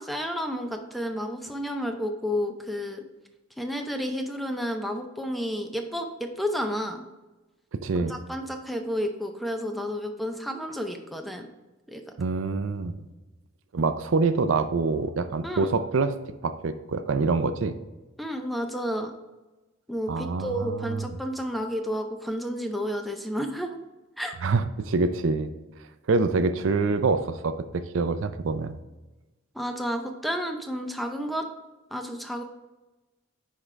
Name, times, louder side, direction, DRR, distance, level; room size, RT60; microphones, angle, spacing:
voice 1, 0.0-3.0 3.6-7.0 8.1-11.5 11.9-12.2 15.4-15.7 18.2-19.1 19.9-23.8 24.2-24.3 29.5-31.5 31.9-32.4, equal, ahead, 4 dB, 0.5 m, -31 dB
voice 2, 7.7-8.1 12.2-13.0 13.7-16.1 16.4-17.7 20.1-21.0 24.4-25.5 26.1-28.8, right 4 dB, 75° right, 10 dB, 0.5 m, -25 dB
9.6 x 3.7 x 3.2 m, 1.1 s
head